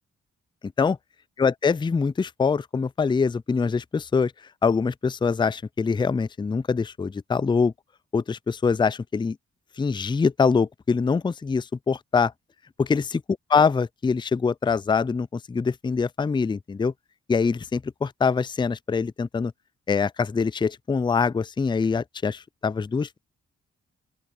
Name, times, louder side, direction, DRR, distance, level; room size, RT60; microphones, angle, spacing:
voice 1, 1.4-4.3 4.6-7.7 8.1-9.4 9.8-12.3 12.8-13.2 13.5-16.9 17.3-19.5 19.9-23.2, left 5 dB, 15° left, 0.4 m, -24 dB
open air
supercardioid pair, 50°, 30 cm